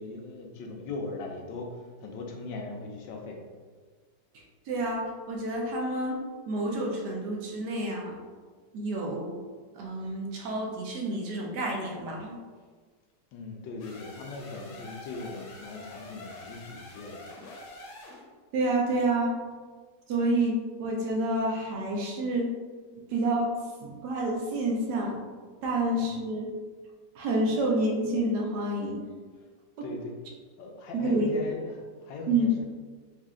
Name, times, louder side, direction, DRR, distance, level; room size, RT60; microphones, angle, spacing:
voice 1, 0.0-3.4 13.3-17.2 26.0-26.1 29.8-30.1 30.6-32.6, left 3 dB, 90° left, 2 dB, 1.4 m, -39 dB
voice 2, 4.3-6.2 6.5-8.2 8.7-9.4 9.7-12.3 18.5-19.4 20.1-22.5 23.1-23.5 23.8-25.2 25.6-26.5 27.1-29.0 30.9-31.3 32.3-32.5, right 1 dB, 70° right, -1 dB, 1.3 m, -28 dB
sound 1, 13.8-18.3, left 2 dB, 70° left, 1.2 m, -46 dB
4.3 x 2.4 x 3.6 m, 1.5 s
omnidirectional pair, 1.9 m